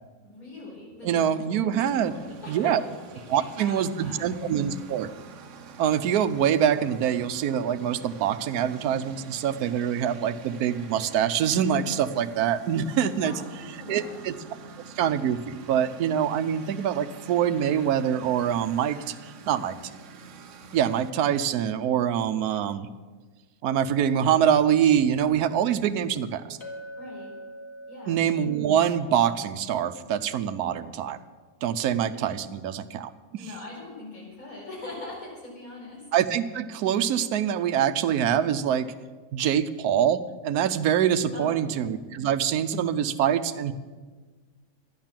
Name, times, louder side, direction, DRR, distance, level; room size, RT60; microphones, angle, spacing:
voice 1, 0.2-2.7 3.1-4.2 13.1-14.2 27.0-27.3 27.9-28.2 33.4-36.0 41.3-41.7, left 2 dB, 70° left, -4 dB, 5.3 m, -41 dB
voice 2, 1.0-2.1 2.5-2.8 3.3-5.1 5.8-13.3 13.9-14.3 15.0-19.1 19.5-19.9 20.7-22.9 23.6-26.6 28.1-31.2 31.6-33.1 36.1-38.9 39.3-43.7, right 9 dB, 80° right, 11 dB, 1.2 m, -25 dB
Engine, 1.7-21.1, right 4 dB, 60° right, 1.1 m, -46 dB
Chink clink, 26.6-31.1, right 1 dB, 45° left, 2.2 m, -45 dB
12.0 x 10.5 x 7.4 m, 1.4 s
omnidirectional pair, 1.6 m